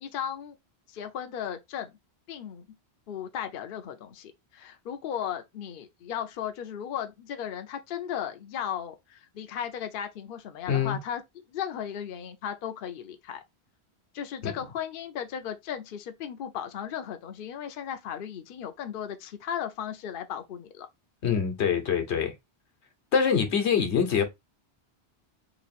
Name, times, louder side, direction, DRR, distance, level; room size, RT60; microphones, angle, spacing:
voice 1, 0.0-0.6 0.9-2.0 2.3-2.7 3.1-13.4 14.1-20.9, left 9 dB, 60° left, 0.7 m, -36 dB
voice 2, 10.7-11.0 14.4-14.5 21.2-22.3 23.1-24.2, left 7 dB, 85° left, 1.2 m, -24 dB
3.0 x 2.7 x 4.1 m
omnidirectional pair, 1.1 m